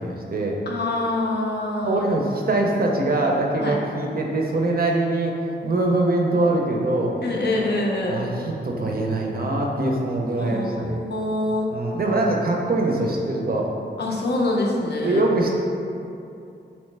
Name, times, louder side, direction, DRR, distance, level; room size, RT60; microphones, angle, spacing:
voice 1, 0.0-0.6 1.8-5.3 5.6-7.1 8.1-11.0 11.7-13.7 15.0-15.5, right 2 dB, 55° right, 0 dB, 0.5 m, -23 dB
voice 2, 0.7-2.0 3.6-3.8 7.2-8.3 10.4-11.7 14.0-15.2, left 2 dB, 60° left, -1 dB, 0.5 m, -25 dB
3.2 x 3.0 x 3.2 m, 2.6 s
wide cardioid pair, 95°, 19 cm